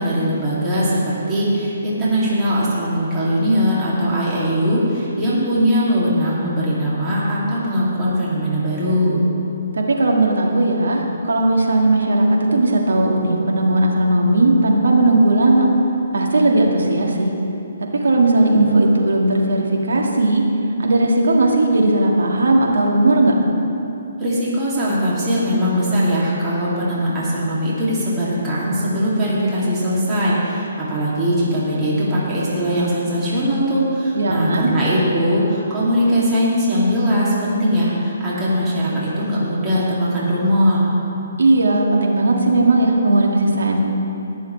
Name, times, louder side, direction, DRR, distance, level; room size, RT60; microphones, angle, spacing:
voice 1, 0.0-9.2 24.2-40.9, equal, 20° right, -8 dB, 2.6 m, -20 dB
voice 2, 9.7-15.7 16.1-17.3 17.9-20.4 20.8-23.3 34.1-34.7 41.4-43.8, right 2 dB, 75° right, 0 dB, 1.8 m, -17 dB
20.5 x 7.1 x 3.3 m, 2.9 s
hypercardioid pair, 140°, 0 cm